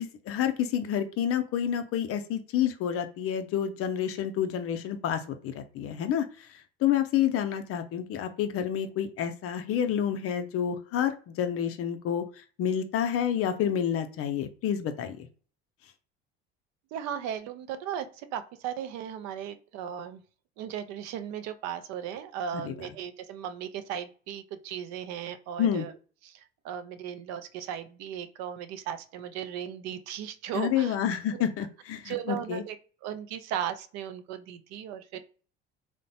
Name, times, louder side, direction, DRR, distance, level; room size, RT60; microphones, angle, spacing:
voice 1, 0.0-6.3 6.8-12.2 12.6-15.3 22.6-22.8 25.6-25.9 30.5-32.6, left 9 dB, 50° left, 8 dB, 0.5 m, -29 dB
voice 2, 16.9-18.1 18.3-20.2 20.6-25.9 26.2-26.3 26.6-31.0 31.3-31.4 32.0-32.8 33.0-35.2, right 9 dB, 60° right, 11 dB, 0.5 m, -36 dB
3.1 x 2.0 x 2.7 m, 0.38 s
hypercardioid pair, 65°, 31 cm